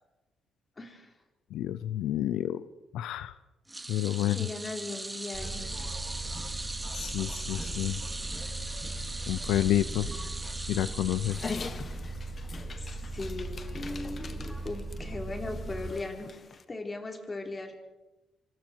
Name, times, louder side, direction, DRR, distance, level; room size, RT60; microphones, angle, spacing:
voice 1, 0.8-1.1 4.3-5.7 12.5-16.3 16.7-17.7, left 2 dB, 25° left, 3 dB, 4.4 m, -38 dB
voice 2, 1.5-2.6 2.9-3.3 3.9-4.4 6.9-8.0 9.3-10.1 10.7-11.4, left 13 dB, 90° left, 14 dB, 0.7 m, -29 dB
sound 1, 3.7-12.2 12.5-12.7 13.9-14.0, right 2 dB, 15° right, 3.4 m, -40 dB
sound 2, 5.3-15.9, right 2 dB, ahead, 4.2 m, -38 dB
Dog, 11.3-16.6, left 5 dB, 45° left, 1.9 m, -43 dB
27.0 x 25.0 x 4.7 m, 1.1 s
cardioid pair, 90°, 0 cm